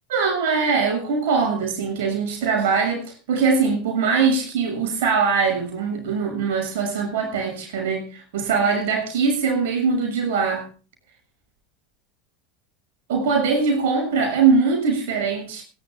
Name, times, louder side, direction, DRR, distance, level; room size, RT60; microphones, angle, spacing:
voice 1, 0.1-10.7 13.1-15.6, right 5 dB, 65° right, 4 dB, 6.7 m, -22 dB
20.5 x 12.0 x 3.6 m, 0.36 s
figure-of-eight pair, 80°, 0 cm